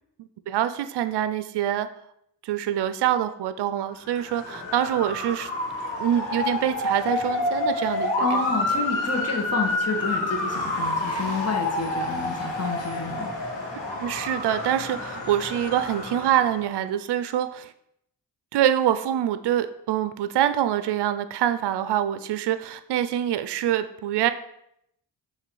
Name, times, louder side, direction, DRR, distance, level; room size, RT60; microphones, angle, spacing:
voice 1, 0.5-1.9 2.4-5.5 6.0-8.4 14.0-17.7 18.5-24.3, right 11 dB, 65° right, 12 dB, 0.5 m, -25 dB
Motor vehicle (road) / Siren, 4.0-16.7, left 2 dB, 75° left, 1.9 m, -29 dB
voice 2, 8.2-13.3, left 3 dB, 35° left, 2 dB, 1.6 m, -29 dB
6.4 x 3.2 x 4.7 m, 0.75 s
cardioid pair, 55°, 45 cm